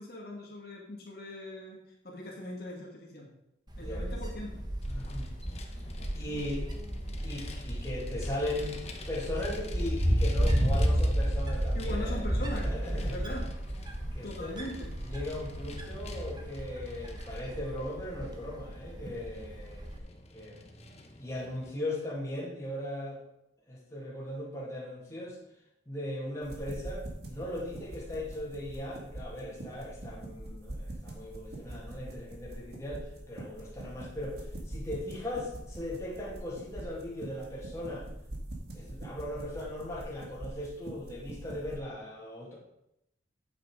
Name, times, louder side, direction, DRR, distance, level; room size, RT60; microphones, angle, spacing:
voice 1, 0.0-1.8 2.0-3.3 3.8-4.6 11.7-13.5 14.2-14.9, left 1 dB, 55° left, -2 dB, 2.1 m, -40 dB
Wind, 3.7-20.0, equal, 20° right, 1.2 m, -32 dB
voice 2, 3.8-4.1 4.9-5.4 6.1-6.7 7.2-8.8 9.1-13.2 14.1-14.6 15.0-20.6 21.2-23.2 23.7-25.4 25.9-38.1 38.7-42.6, left 1 dB, 15° left, -5 dB, 2.4 m, -38 dB
Vehicle, 4.8-21.7, left 1 dB, 35° left, 1.0 m, -47 dB
sound 1, 26.4-41.8, right 1 dB, 55° right, 1.9 m, -43 dB
8.6 x 7.9 x 5.0 m, 0.81 s
head